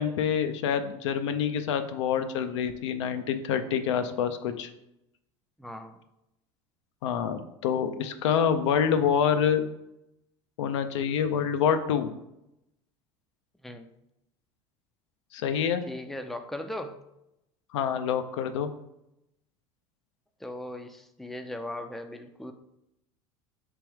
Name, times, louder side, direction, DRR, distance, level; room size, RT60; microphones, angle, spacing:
voice 1, 0.0-4.7 7.0-9.7 10.6-12.1 15.3-15.8 17.7-18.7, left 7 dB, 80° left, 8 dB, 0.5 m, -26 dB
voice 2, 5.6-6.0 13.6-13.9 15.9-17.0 20.4-22.5, left 1 dB, ahead, 6 dB, 0.4 m, -38 dB
3.5 x 3.0 x 4.5 m, 0.83 s
hypercardioid pair, 85°, 15 cm